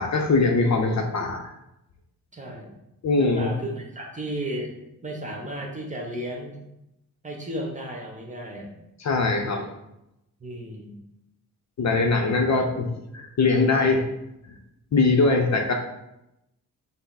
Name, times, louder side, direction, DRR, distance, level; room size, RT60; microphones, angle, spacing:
voice 1, 0.0-1.5 3.0-3.5 9.0-9.7 11.8-14.1 14.9-15.7, left 3 dB, 50° left, 3 dB, 0.7 m, -22 dB
voice 2, 2.3-2.7 3.2-4.7 5.0-6.6 7.2-8.8 10.4-11.0, right 1 dB, 20° right, 0 dB, 1.1 m, -34 dB
5.5 x 2.1 x 4.0 m, 0.86 s
cardioid pair, 75°, 36 cm